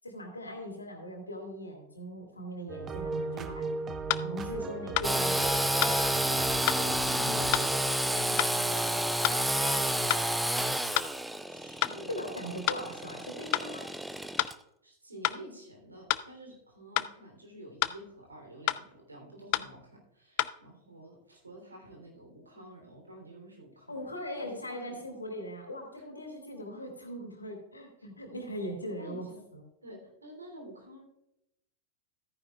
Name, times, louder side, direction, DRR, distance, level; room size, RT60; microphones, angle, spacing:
voice 1, 0.0-3.7 4.2-5.5 12.1-13.9 23.9-29.3 29.5-29.6, equal, 80° left, 3 dB, 2.5 m, -40 dB
sound 1, 2.7-7.8, right 3 dB, 25° right, 0.9 m, -37 dB
sound 2, 3.3-3.4 4.1-4.3 5.0-5.1 5.8-6.0 6.7-6.8 7.5-7.7 8.4-8.5 9.2-9.4 10.1-10.3 10.9-11.1 11.8-12.0 12.7-12.8 13.5-13.7 14.4-14.6 15.2-15.4 16.1-16.3 17.0-17.1 17.8-18.0 18.7-18.8 19.5-19.7 20.4-20.5, left 18 dB, 45° left, 0.4 m, -29 dB
voice 2, 4.7-5.1 6.2-10.0 11.5-12.1 12.7-12.8 14.8-25.0 26.0-26.1 29.0-29.4 29.8-31.0, equal, 80° right, 1 dB, 3.1 m, -49 dB
Engine / Sawing, 5.0-14.5, right 1 dB, 5° right, 0.5 m, -30 dB
13.5 x 9.7 x 2.3 m, 0.82 s
figure-of-eight pair, 90°, 0 cm